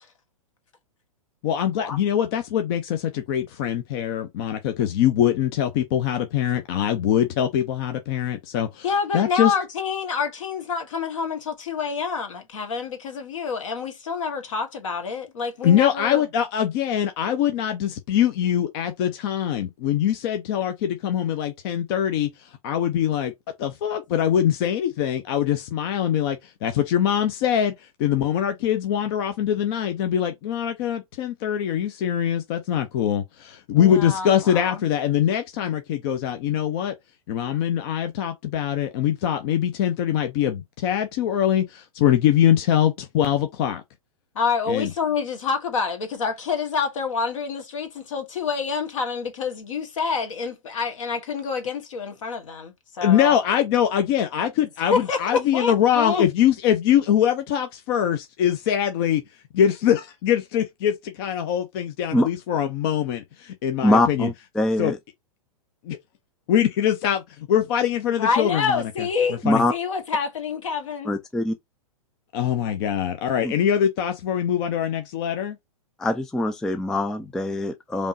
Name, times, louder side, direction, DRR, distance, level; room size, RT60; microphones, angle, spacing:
voice 1, 1.4-8.9 9.1-9.5 15.6-23.3 23.6-27.7 28.0-36.9 37.3-43.8 44.7-44.9 53.0-59.2 59.5-63.2 63.6-64.3 64.8-64.9 65.9-66.0 66.5-67.2 67.5-68.9 69.5-69.6 72.3-75.6, left 10 dB, 40° left, 0.7 m, -23 dB
voice 2, 8.8-16.2 33.7-34.8 44.3-53.3 54.9-56.2 68.2-69.4 69.7-71.1, left 5 dB, 60° left, 1.6 m, -27 dB
voice 3, 63.8-65.0 69.4-69.7 71.1-71.6 73.4-73.5 76.0-78.1, left 1 dB, 5° left, 0.3 m, -23 dB
5.2 x 3.0 x 2.7 m
figure-of-eight pair, 105°, 19 cm